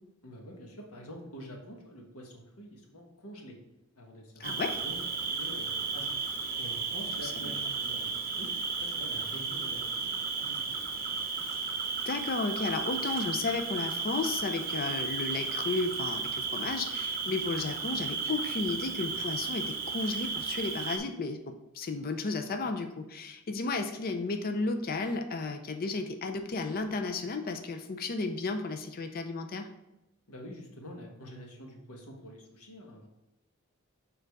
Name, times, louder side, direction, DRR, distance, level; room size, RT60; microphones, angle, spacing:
voice 1, 0.2-3.6 3.9-5.0 5.4-6.1 6.6-8.5 8.8-10.8 30.3-33.1, equal, 85° left, 1 dB, 1.4 m, -46 dB
voice 2, 4.4-4.8 7.2-7.3 12.1-29.7, left 3 dB, 45° left, 6 dB, 0.5 m, -33 dB
Cricket, 4.4-21.0, right 5 dB, 45° right, 0.9 m, -34 dB
6.7 x 3.9 x 4.7 m, 0.93 s
head